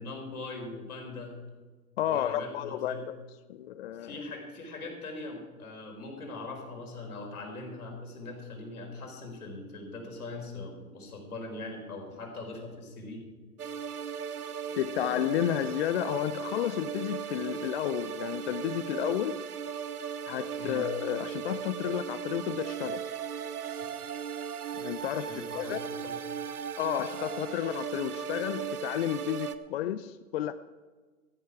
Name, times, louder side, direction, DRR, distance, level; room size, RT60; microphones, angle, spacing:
voice 1, 0.0-1.3 2.0-3.0 3.9-13.3 20.6-20.8 25.2-26.2, left 2 dB, 75° left, 2 dB, 4.4 m, -41 dB
voice 2, 2.0-3.2 3.5-4.1 14.8-19.4 20.3-23.0 24.8-25.3 25.5-25.8 26.8-30.5, left 11 dB, 45° left, 12 dB, 0.5 m, -31 dB
sound 1, 13.6-29.5, right 7 dB, 80° right, 0.9 m, -37 dB
13.5 x 12.5 x 4.7 m, 1.3 s
hypercardioid pair, 120°, 44 cm